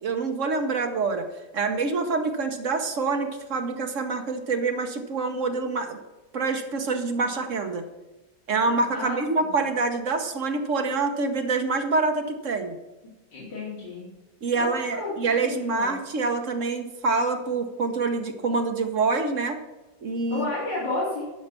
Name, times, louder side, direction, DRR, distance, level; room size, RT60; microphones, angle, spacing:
voice 1, 0.0-1.2 1.5-6.0 6.3-7.8 8.5-12.7 14.4-19.6 20.0-20.5, right 3 dB, 50° right, 6 dB, 1.1 m, -26 dB
voice 2, 8.9-9.5 13.3-14.0 14.5-15.9 20.3-21.2, left 2 dB, 80° left, -6 dB, 3.3 m, -32 dB
11.5 x 5.5 x 6.8 m, 1.1 s
omnidirectional pair, 1.9 m